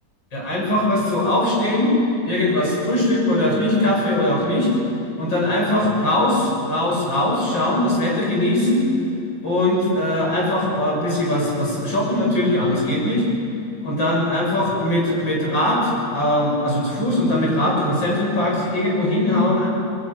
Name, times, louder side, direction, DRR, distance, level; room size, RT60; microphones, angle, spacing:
voice 1, 0.3-1.9 2.2-4.7 5.2-8.9 9.4-13.2 13.8-19.7, left 1 dB, 60° left, -3 dB, 7.8 m, -20 dB
24.0 x 21.0 x 9.6 m, 2.5 s
omnidirectional pair, 2.3 m